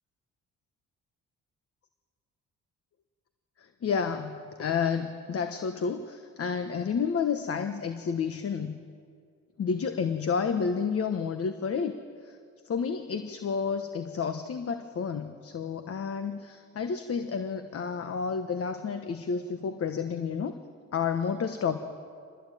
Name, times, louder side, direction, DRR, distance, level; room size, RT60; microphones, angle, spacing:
voice 1, 3.6-8.8 9.6-12.0 12.2-12.4 12.6-20.5 20.9-21.8, left 6 dB, 50° left, 8 dB, 1.3 m, -30 dB
25.0 x 19.5 x 9.2 m, 2.3 s
cardioid pair, 90°, 30 cm